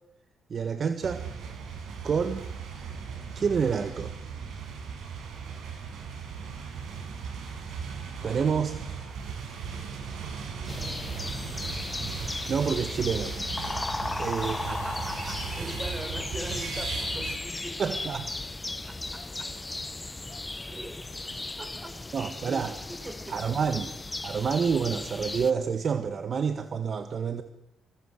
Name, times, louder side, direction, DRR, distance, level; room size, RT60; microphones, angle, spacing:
voice 1, 0.5-1.2 2.0-2.5 3.4-4.1 8.2-8.7 12.5-13.3 14.2-14.6 17.8-18.3 22.1-22.7 23.3-23.9 24.2-27.4, right 6 dB, 50° right, 9 dB, 1.8 m, -28 dB
sound 1, 1.0-17.4, right 6 dB, 70° right, 6.5 m, -37 dB
voice 2, 8.2-8.5 14.1-14.2 14.7-18.0 18.9-19.8 20.7-21.0 21.6-22.0 22.5-22.6 22.9-23.4 23.7-23.8 24.3-24.4, right 1 dB, 20° right, 8 dB, 6.7 m, -42 dB
sound 2, 10.7-25.5, left 2 dB, 15° left, 1.4 m, -36 dB
27.0 x 25.0 x 8.0 m, 0.82 s
cardioid pair, 90°, 0 cm